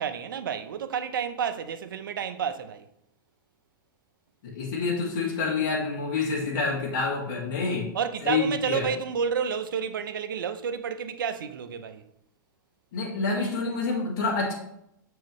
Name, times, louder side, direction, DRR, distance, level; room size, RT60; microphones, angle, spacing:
voice 1, 0.0-2.9 7.9-12.0, right 7 dB, 90° right, 0.6 m, -30 dB
voice 2, 4.4-7.9 8.2-8.9 12.9-14.5, left 4 dB, 70° left, 1.8 m, -27 dB
7.2 x 4.7 x 3.0 m
hypercardioid pair, 115°, 11 cm